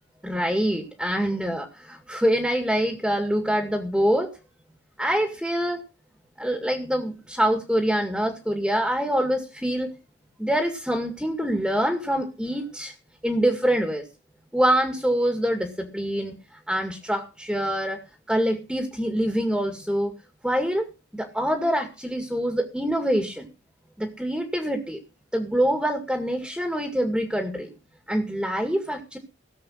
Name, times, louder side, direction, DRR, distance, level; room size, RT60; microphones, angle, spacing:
voice 1, 0.2-4.3 5.0-5.8 6.4-9.9 10.4-12.9 13.2-14.1 14.5-16.3 16.7-18.0 18.3-20.1 20.4-20.9 21.1-23.5 24.0-25.0 25.3-27.7 28.1-29.2, equal, 5° right, 5 dB, 2.1 m, -25 dB
18.0 x 7.7 x 5.7 m, 0.32 s
head